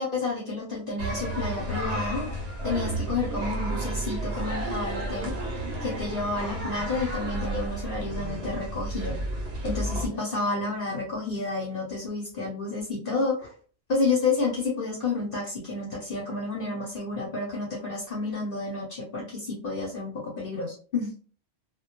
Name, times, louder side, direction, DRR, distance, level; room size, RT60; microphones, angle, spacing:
voice 1, 0.0-2.3 2.6-9.1 9.6-13.5 13.9-21.1, left 3 dB, 60° left, -2 dB, 0.7 m, -30 dB
sound 1, 1.0-10.1, right 1 dB, 75° right, 0.9 m, -32 dB
2.1 x 2.1 x 2.8 m, 0.41 s
omnidirectional pair, 1.1 m